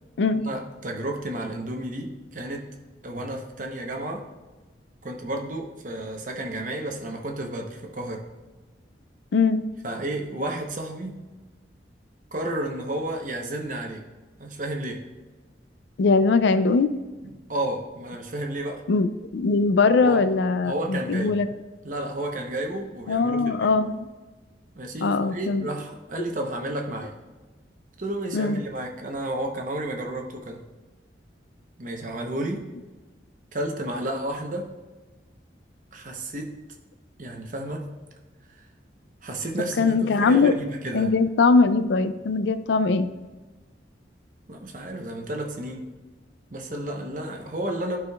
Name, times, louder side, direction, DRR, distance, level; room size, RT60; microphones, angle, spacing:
voice 1, 0.3-2.7 3.0-4.3 5.0-8.2 9.8-11.2 12.3-14.0 14.4-15.0 17.2-18.8 20.0-20.2 20.6-21.4 21.8-23.7 24.8-27.1 28.0-30.6 31.8-32.6 33.5-34.7 35.9-36.5 37.2-37.9 39.2-41.1 44.5-45.9 46.5-48.0, right 1 dB, 45° right, 2 dB, 0.8 m, -32 dB
voice 2, 9.3-9.6 16.0-16.9 18.9-21.5 23.1-24.1 25.0-25.7 28.3-28.6 39.8-40.5 40.9-43.1, left 4 dB, 75° left, 11 dB, 0.4 m, -21 dB
11.5 x 4.8 x 2.3 m, 1.3 s
head